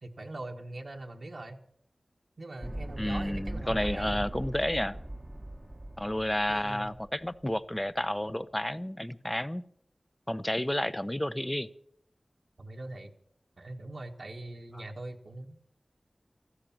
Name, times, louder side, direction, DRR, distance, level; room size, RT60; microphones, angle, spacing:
voice 1, 0.0-1.6 2.4-4.2 6.5-6.9 12.6-13.1 13.6-15.5, right 2 dB, 65° right, 1 dB, 1.4 m, -42 dB
sound 1, 2.6-7.8, right 1 dB, 20° right, 1.0 m, -40 dB
voice 2, 3.0-5.0 6.0-9.6 10.3-11.7, left 1 dB, 15° left, 15 dB, 0.7 m, -31 dB
15.0 x 13.0 x 7.3 m, 0.68 s
wide cardioid pair, 70°, 0 cm